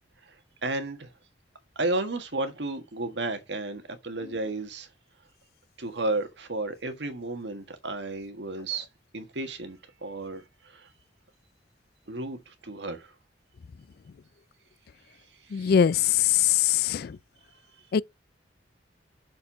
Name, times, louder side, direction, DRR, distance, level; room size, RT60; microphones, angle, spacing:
voice 1, 0.6-1.1 1.7-4.9 5.8-8.9 9.1-10.9 12.1-13.1 15.5-15.7, right 2 dB, 90° right, 1.6 m, -33 dB
voice 2, 15.5-17.2 17.9-18.0, left 9 dB, 60° left, 0.3 m, -22 dB
6.6 x 4.4 x 6.0 m
head